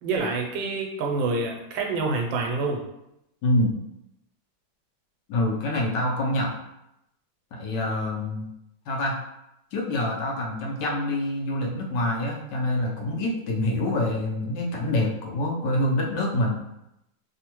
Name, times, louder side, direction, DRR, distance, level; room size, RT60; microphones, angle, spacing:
voice 1, 0.0-2.8, right 3 dB, 90° right, 1 dB, 1.4 m, -27 dB
voice 2, 3.4-3.7 5.3-6.6 7.5-8.5 8.9-9.2 9.7-16.6, left 1 dB, 75° left, -1 dB, 1.2 m, -26 dB
3.3 x 2.1 x 2.9 m, 0.84 s
omnidirectional pair, 2.0 m